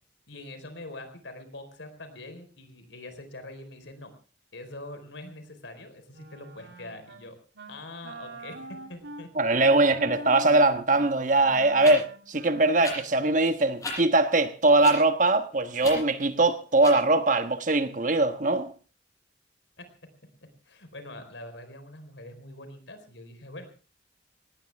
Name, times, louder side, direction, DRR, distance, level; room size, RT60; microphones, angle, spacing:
voice 1, 0.3-4.1 4.5-7.4 7.7-9.3 19.8-19.9 20.7-23.7, left 2 dB, 80° left, 4.3 m, -44 dB
Wind instrument woodwind instrument, 6.1-7.2 7.5-7.8 8.0-13.3, right 1 dB, 75° right, 3.1 m, -43 dB
voice 2, 9.4-18.7, right 2 dB, 45° right, 1.3 m, -22 dB
sound 1, 10.9-11.0 11.8-11.9 12.8-12.9 13.8-13.9 14.8-15.0 15.8-16.0 16.8-16.9, left 2 dB, 20° left, 7.1 m, -34 dB
19.0 x 19.0 x 3.5 m
head